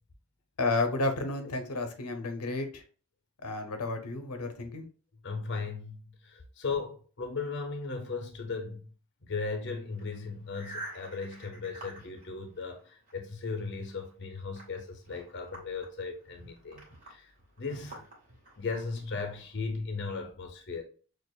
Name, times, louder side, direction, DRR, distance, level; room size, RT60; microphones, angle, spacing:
voice 1, 0.6-2.8 3.4-4.9, left 2 dB, 85° left, 0.7 m, -31 dB
voice 2, 5.2-8.8 9.2-17.3 17.6-18.1 18.6-20.8, left 4 dB, 50° left, 0.7 m, -37 dB
sound 1, 9.8-13.1 13.5-19.6, right 1 dB, 40° right, 1.9 m, -49 dB
6.3 x 2.4 x 2.3 m
head